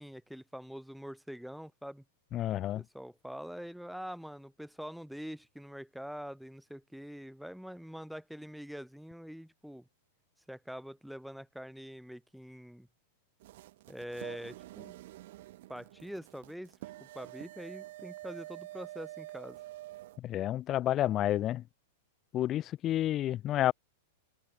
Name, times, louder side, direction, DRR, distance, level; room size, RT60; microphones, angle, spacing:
voice 1, 0.0-2.0 2.7-9.9 10.5-12.9 13.9-15.0 15.7-19.6, equal, ahead, 7.0 m, -44 dB
voice 2, 2.3-2.8 20.2-21.6 22.3-23.7, left 13 dB, 35° left, 0.3 m, -30 dB
sound 1, 13.4-20.2, right 16 dB, 65° right, 1.7 m, -48 dB
open air
hypercardioid pair, 110°, 0 cm